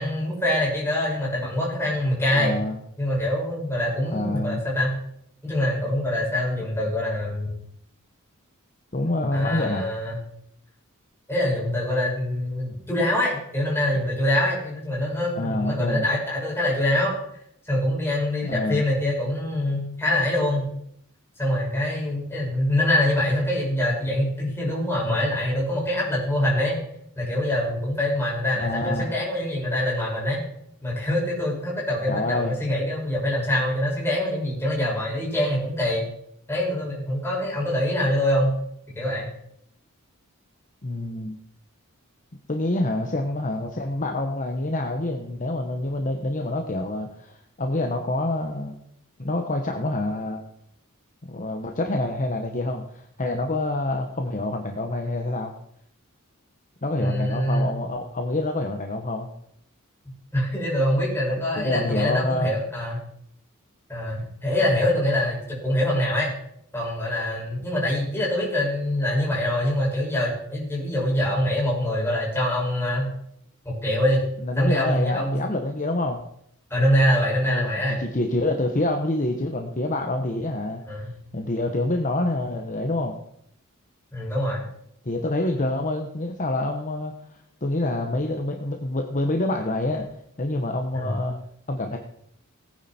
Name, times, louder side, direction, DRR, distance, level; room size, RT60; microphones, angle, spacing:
voice 1, 0.0-2.6 3.0-4.9 5.4-7.5 9.3-10.2 11.3-17.1 17.6-20.7 21.4-26.8 27.2-30.4 30.8-36.0 36.5-38.5 39.0-39.3 57.0-57.8 60.3-63.0 63.9-66.3 66.7-73.1 73.6-74.2 74.6-75.4 76.7-78.0 80.9-81.1 84.1-84.6 90.9-91.1, left 1 dB, 10° left, -5 dB, 6.3 m, -24 dB
voice 2, 2.3-2.8 4.1-4.6 8.9-9.9 15.3-16.1 18.4-18.8 28.6-29.1 32.1-32.6 40.8-41.4 42.5-48.8 49.2-50.4 51.3-55.5 56.8-59.3 61.6-62.5 74.4-76.2 77.4-77.7 78.0-80.8 81.3-83.2 85.0-90.0 90.4-91.4 91.7-92.0, left 2 dB, 35° left, 3 dB, 1.1 m, -27 dB
18.0 x 9.8 x 4.4 m, 0.72 s
head